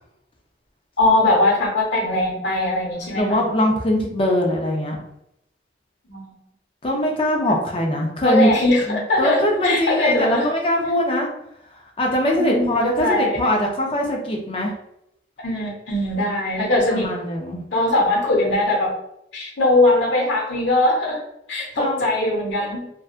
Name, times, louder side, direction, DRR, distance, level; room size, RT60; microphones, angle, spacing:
voice 1, 1.0-3.4 6.1-6.3 8.2-10.5 12.4-13.4 15.4-17.1 17.7-18.9 19.3-21.2 21.5-22.9, left 2 dB, 85° left, -2 dB, 0.7 m, -20 dB
voice 2, 3.1-5.0 6.8-8.5 8.9-11.3 12.0-14.7 16.9-17.6 21.8-22.1, left 1 dB, 30° left, 0 dB, 0.5 m, -21 dB
2.6 x 2.2 x 2.4 m, 0.80 s
head